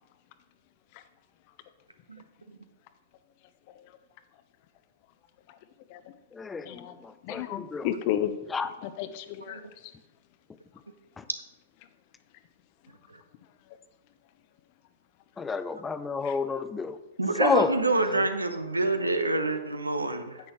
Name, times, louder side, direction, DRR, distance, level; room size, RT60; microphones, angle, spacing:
voice 1, 6.3-7.9 8.5-8.7 11.2-11.3 15.4-17.0 17.4-18.2, left 5 dB, 15° left, 12 dB, 0.6 m, -30 dB
voice 2, 7.2-8.3 8.8-9.6 16.2-16.3 19.5-19.6, left 11 dB, 45° left, 11 dB, 0.8 m, -32 dB
voice 3, 17.2-20.4, right 2 dB, 90° right, 8 dB, 1.1 m, -27 dB
10.0 x 8.4 x 3.2 m, 1.0 s
figure-of-eight pair, 105°, 0 cm